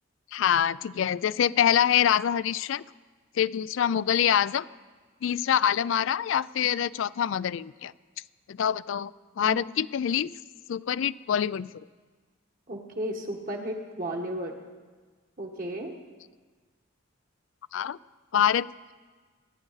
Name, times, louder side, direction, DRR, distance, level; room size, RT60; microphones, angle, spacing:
voice 1, 0.3-2.8 3.4-4.6 5.2-7.9 8.5-9.1 9.4-10.3 10.7-11.7 17.7-18.0 18.3-18.7, left 9 dB, 65° left, 19 dB, 0.3 m, -25 dB
voice 2, 12.7-14.5 15.4-15.9, equal, 40° right, 1 dB, 1.2 m, -33 dB
24.0 x 10.0 x 4.0 m, 1.4 s
head